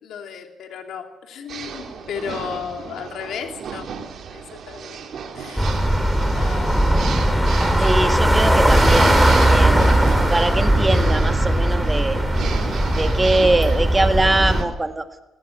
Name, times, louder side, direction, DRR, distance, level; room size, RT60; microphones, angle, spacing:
voice 1, 0.0-3.9 4.3-5.1 5.3-5.8 6.3-7.8, left 7 dB, 75° left, 4 dB, 3.1 m, -35 dB
sound 1, 1.5-14.7, right 6 dB, 65° right, 3.0 m, -33 dB
sound 2, 5.6-14.6, right 1 dB, ahead, 2.6 m, -18 dB
voice 2, 7.8-9.8 10.1-12.2 12.9-15.2, right 2 dB, 20° right, 7 dB, 1.7 m, -22 dB
19.0 x 17.5 x 9.2 m, 1.1 s
cardioid pair, 90°, 0 cm